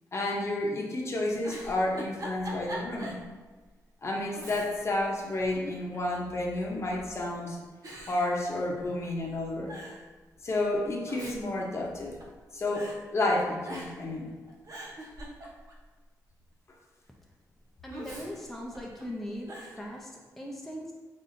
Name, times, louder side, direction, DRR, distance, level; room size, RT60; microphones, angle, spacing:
voice 1, 0.1-3.2 4.0-7.6 8.0-9.7 10.4-12.2 12.5-14.3, left 2 dB, 40° left, -1 dB, 0.8 m, -30 dB
Giggle, 1.4-3.3 3.6-3.7 4.3-5.0 5.3-6.1 6.9-7.3 7.8-9.1 9.3-9.4 9.7-10.1 10.9-12.4 12.7-13.0 13.6-14.1 14.5-15.9 17.9-19.0 19.5-19.8, right 1 dB, 55° right, 0.8 m, -43 dB
voice 2, 17.8-20.9, equal, 5° left, -3 dB, 0.6 m, -40 dB
4.0 x 3.7 x 2.6 m, 1.3 s
cardioid pair, 90°, 7 cm